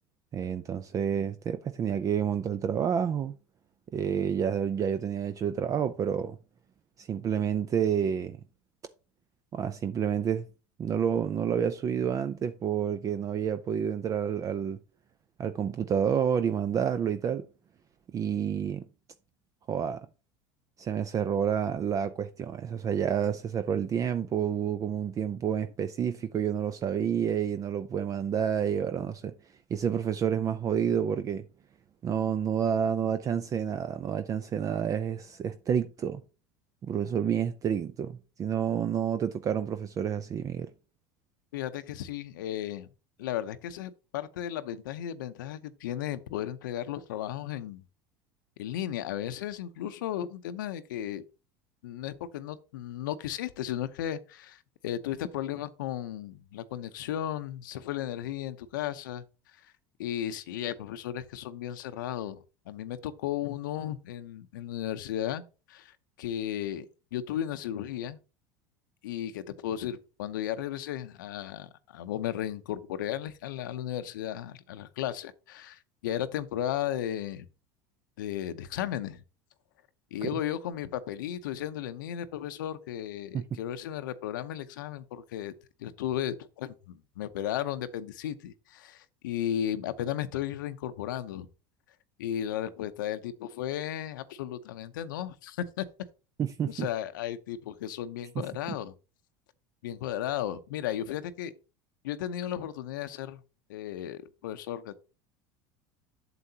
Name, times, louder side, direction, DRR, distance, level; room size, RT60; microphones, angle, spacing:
voice 1, 0.3-3.4 3.9-6.4 7.0-8.4 9.5-10.5 10.8-14.8 15.4-17.4 18.1-18.9 19.7-20.1 20.8-29.3 29.7-31.5 32.0-36.2 36.8-40.7 80.2-80.3 83.3-83.4 96.4-96.9 98.4-98.5, right 8 dB, 35° right, 0.5 m, -29 dB
voice 2, 41.5-42.9 43.2-47.8 48.6-51.2 51.8-59.2 60.0-65.4 65.7-66.9 67.1-68.2 69.0-77.5 78.2-79.2 80.1-85.5 85.8-91.5 92.2-95.8 96.7-98.9 99.8-101.5 102.0-103.4 103.7-105.0, left 11 dB, 90° left, 0.7 m, -35 dB
7.9 x 7.6 x 2.8 m
supercardioid pair, 110°, 10 cm